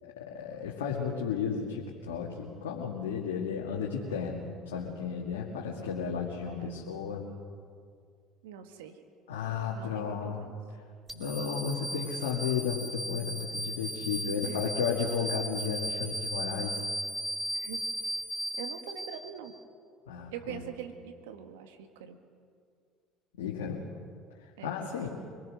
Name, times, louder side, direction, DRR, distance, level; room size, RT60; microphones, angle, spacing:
voice 1, 0.0-7.2 9.3-10.4 11.1-16.8 20.1-20.6 23.4-23.8 24.6-25.1, left 6 dB, 85° left, -3 dB, 2.1 m, -33 dB
voice 2, 6.5-7.0 8.4-9.0 9.7-10.6 14.5-14.7 17.5-17.9 18.6-19.5 20.3-22.2 24.6-25.1, right 9 dB, 80° right, 7 dB, 1.6 m, -44 dB
sound 1, 11.1-19.6, equal, 5° right, 3.0 m, -36 dB
26.0 x 19.0 x 6.4 m, 2.2 s
hypercardioid pair, 75°, 0 cm